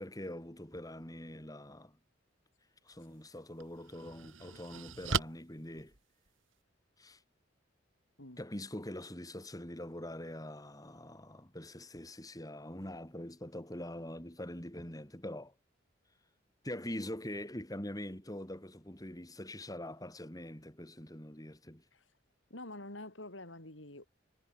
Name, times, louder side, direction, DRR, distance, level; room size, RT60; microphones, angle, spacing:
voice 1, 0.0-2.0 2.8-5.9 7.0-7.2 8.4-15.5 16.6-21.8, left 1 dB, 20° left, 3.5 m, -44 dB
sound 1, 2.9-3.0 3.6-6.6, right 5 dB, 85° right, 3.1 m, -39 dB
voice 2, 22.5-24.1, left 2 dB, 70° left, 6.2 m, -47 dB
head